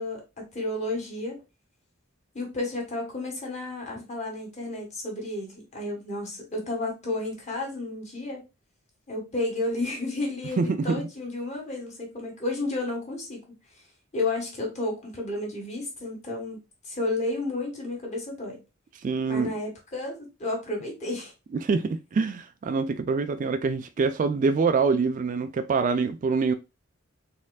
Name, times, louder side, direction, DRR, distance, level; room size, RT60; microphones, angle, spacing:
voice 1, 0.0-1.4 2.3-8.4 9.1-13.4 14.1-16.6 16.8-18.6 19.3-21.3, left 2 dB, 35° left, 1.8 m, -32 dB
voice 2, 10.6-11.1 19.0-19.5 21.6-26.5, right 4 dB, 40° right, 0.3 m, -25 dB
4.3 x 3.6 x 2.3 m
head